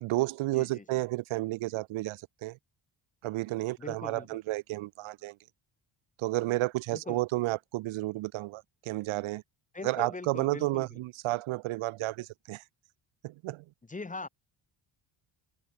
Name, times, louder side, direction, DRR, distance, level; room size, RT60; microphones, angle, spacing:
voice 1, 0.0-2.6 3.2-5.4 6.2-9.4 9.8-12.6 13.2-13.6, right 18 dB, 80° right, 0.8 m, -32 dB
voice 2, 0.5-0.8 3.8-4.4 6.9-7.2 9.7-11.0 13.9-14.3, left 3 dB, 15° left, 1.4 m, -41 dB
cardioid pair, 130°, 47 cm